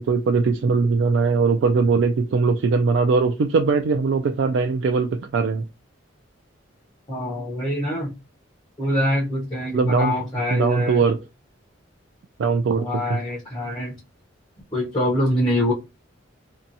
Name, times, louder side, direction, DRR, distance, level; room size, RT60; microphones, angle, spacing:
voice 1, 0.0-5.7 9.7-10.2 10.5-11.2 12.4-13.2, right 4 dB, 65° right, 5 dB, 0.3 m, -20 dB
voice 2, 7.1-8.1 8.8-11.0 12.8-13.9 14.7-15.7, left 1 dB, 25° left, -5 dB, 0.7 m, -24 dB
2.8 x 2.2 x 2.6 m, 0.25 s
head